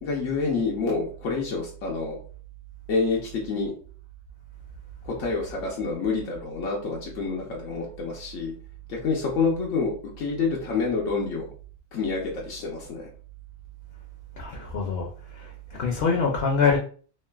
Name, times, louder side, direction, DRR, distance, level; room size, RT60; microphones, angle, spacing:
voice 1, 0.0-2.2 2.9-3.7 5.0-8.5 8.9-11.5 11.9-13.1, left 4 dB, 90° left, 1.1 m, -28 dB
voice 2, 14.4-16.8, left 5 dB, 60° left, 0.8 m, -25 dB
3.0 x 2.5 x 2.3 m
omnidirectional pair, 1.3 m